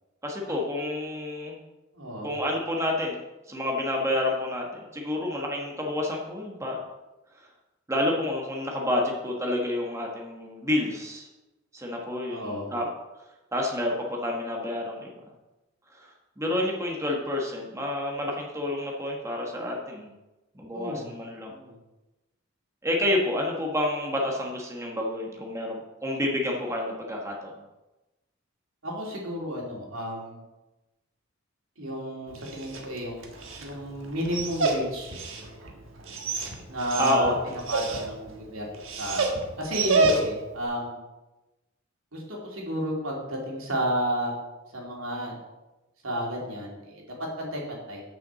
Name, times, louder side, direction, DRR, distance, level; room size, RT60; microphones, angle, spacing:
voice 1, 0.2-1.6 2.2-3.2 3.5-6.8 7.9-11.3 11.7-12.9 13.5-15.2 15.9-20.1 20.5-21.5 22.8-27.5 37.0-37.4, left 1 dB, 15° right, -1 dB, 1.4 m, -29 dB
voice 2, 1.9-2.3 12.3-12.7 20.7-21.1 21.5-21.8 28.8-30.4 31.8-33.3 33.6-35.1 36.7-37.3 37.7-38.6 39.0-39.3 39.6-41.0 42.1-44.3 44.7-45.4 46.0-47.0 47.4-48.0, equal, 85° right, -2 dB, 2.8 m, -32 dB
Dog, 32.3-40.6, right 3 dB, 70° right, 1.4 m, -30 dB
6.9 x 6.0 x 7.5 m, 1.1 s
head